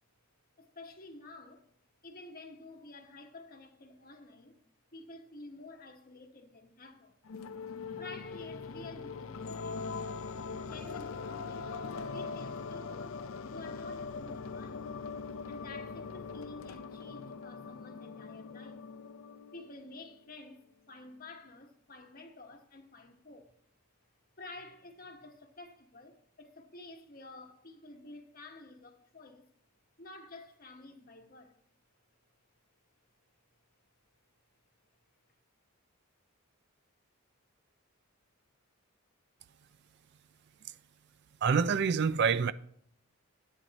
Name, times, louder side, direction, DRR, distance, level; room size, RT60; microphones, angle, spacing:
voice 1, 0.6-1.7 2.0-4.6 4.9-7.2 8.0-9.9 10.6-11.7 12.1-13.2 13.4-14.9 15.5-18.9 19.5-23.5 24.4-29.5 30.0-31.6, left 2 dB, 45° left, 1.2 m, -50 dB
sound 1, 7.2-20.2, left 4 dB, 75° left, 0.6 m, -41 dB
voice 2, 41.4-42.5, right 6 dB, 55° right, 0.4 m, -26 dB
12.5 x 8.9 x 4.0 m
head